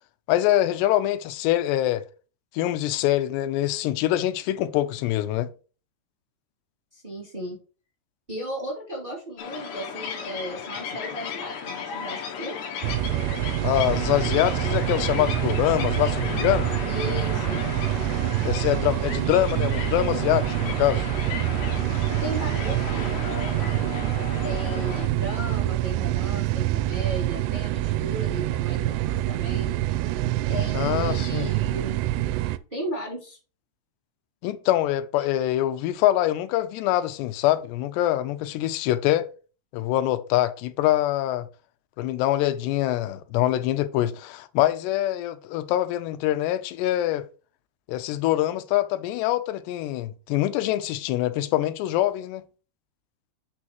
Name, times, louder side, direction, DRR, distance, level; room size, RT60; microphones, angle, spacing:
voice 1, 0.3-2.0 2.5-5.5 13.6-16.7 18.4-21.1 30.7-31.5 34.4-39.3 39.7-41.5 42.0-47.3 47.9-52.4, left 14 dB, 90° left, 2.8 m, -24 dB
voice 2, 6.9-7.6 8.3-12.6 16.8-17.6 22.2-24.0 24.4-29.8 30.5-32.0 32.7-33.4, right 1 dB, 15° right, 2.0 m, -35 dB
sound 1, 9.4-25.1, left 7 dB, 60° left, 2.4 m, -35 dB
sound 2, 12.8-32.6, right 15 dB, 85° right, 2.7 m, -26 dB
8.6 x 6.3 x 3.0 m
omnidirectional pair, 4.8 m